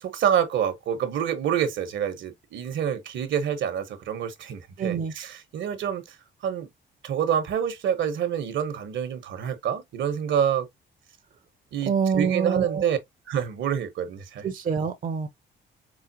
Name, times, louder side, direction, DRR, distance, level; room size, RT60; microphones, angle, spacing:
voice 1, 0.0-6.2 6.4-6.7 7.0-10.7 11.7-13.0 13.3-14.5, right 8 dB, 75° right, 1.1 m, -27 dB
voice 2, 4.8-5.1 11.8-12.9 14.4-15.3, right 6 dB, 45° right, 0.7 m, -26 dB
4.9 x 2.1 x 2.8 m
cardioid pair, 90°, 20 cm